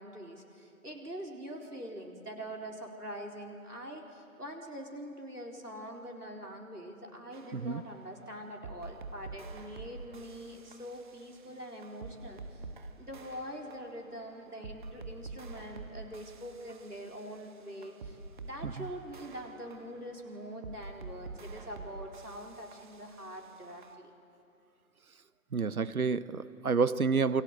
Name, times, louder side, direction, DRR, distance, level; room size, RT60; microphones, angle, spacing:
voice 1, 0.0-12.6 13.0-24.1, equal, 85° right, 1 dB, 4.3 m, -44 dB
sound 1, 7.3-23.9, right 3 dB, 30° right, 1.4 m, -48 dB
voice 2, 25.5-27.4, right 5 dB, 70° right, 17 dB, 1.0 m, -29 dB
28.5 x 22.5 x 8.0 m, 2.7 s
figure-of-eight pair, 140°, 45 cm